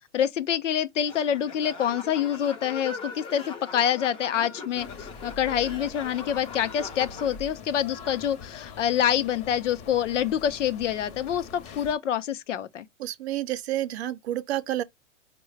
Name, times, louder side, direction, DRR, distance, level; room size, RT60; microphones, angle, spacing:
voice 1, 0.1-4.9 5.2-12.9, left 9 dB, 85° left, 0.7 m, -26 dB
sound 1, 1.1-7.4, left 4 dB, 15° left, 0.5 m, -41 dB
sound 2, 4.7-12.0, left 5 dB, 35° left, 0.8 m, -43 dB
voice 2, 13.0-14.8, right 13 dB, 65° right, 0.6 m, -29 dB
4.6 x 2.2 x 3.2 m
hypercardioid pair, 130°, 36 cm